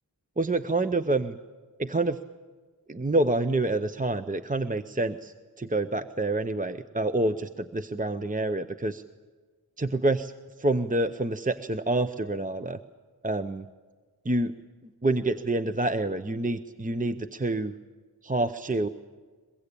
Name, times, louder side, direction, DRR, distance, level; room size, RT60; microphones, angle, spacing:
voice 1, 0.4-1.4 1.8-2.2 2.9-9.0 9.8-10.3 10.6-12.8 13.2-13.7 14.3-14.5 15.0-17.7 18.2-18.9, right 2 dB, 20° right, 10 dB, 0.7 m, -27 dB
23.0 x 22.5 x 8.5 m, 1.4 s
wide cardioid pair, 60°, 40 cm